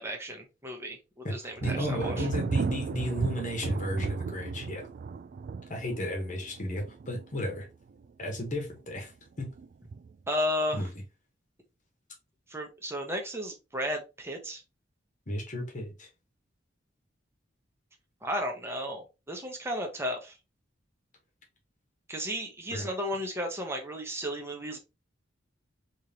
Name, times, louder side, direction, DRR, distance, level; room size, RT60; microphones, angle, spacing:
voice 1, 0.0-2.3 10.3-10.9 12.5-14.6 18.2-20.3 22.1-24.8, equal, 15° right, 0.9 m, -34 dB
voice 2, 1.6-4.9 5.7-7.7 8.2-9.1 9.4-9.6 10.7-10.9 15.3-16.1 22.7-22.9, left 1 dB, 40° left, 1.3 m, -34 dB
Thunder, 1.6-8.1 8.4-9.0 9.4-10.3, right 5 dB, 45° right, 0.3 m, -35 dB
3.6 x 3.1 x 2.9 m
head